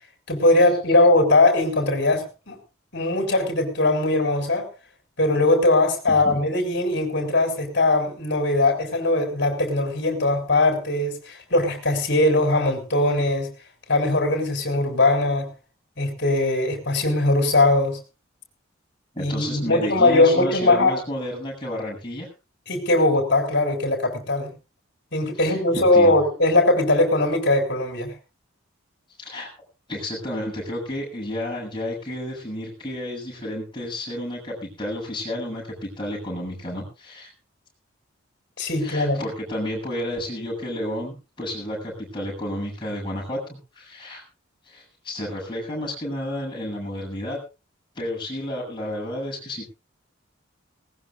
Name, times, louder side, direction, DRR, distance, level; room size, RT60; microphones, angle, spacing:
voice 1, 0.3-2.6 2.9-4.7 5.2-13.5 13.9-15.5 16.0-18.0 19.2-20.9 22.7-24.5 25.1-28.1 38.6-39.2, left 2 dB, 50° left, 4 dB, 4.3 m, -20 dB
voice 2, 6.1-6.4 19.1-22.3 25.4-26.1 29.2-29.5 29.9-37.3 38.8-44.2 44.7-47.4 48.0-49.7, left 1 dB, 20° left, -2 dB, 7.5 m, -31 dB
20.0 x 18.5 x 2.5 m, 0.31 s
head